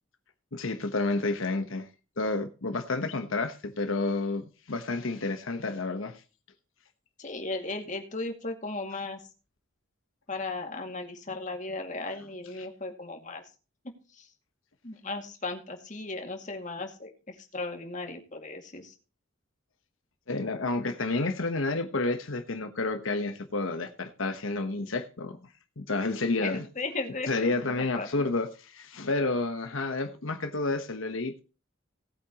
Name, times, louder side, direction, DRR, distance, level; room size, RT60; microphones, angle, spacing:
voice 1, 0.5-1.9 2.2-6.2 12.5-12.7 20.3-25.4 25.8-26.7 27.3-31.4, left 3 dB, 80° left, 1.1 m, -30 dB
voice 2, 7.2-9.2 10.3-13.4 14.2-14.3 14.8-18.9 26.4-28.1, left 3 dB, 40° left, 2.2 m, -36 dB
18.5 x 8.5 x 3.0 m
head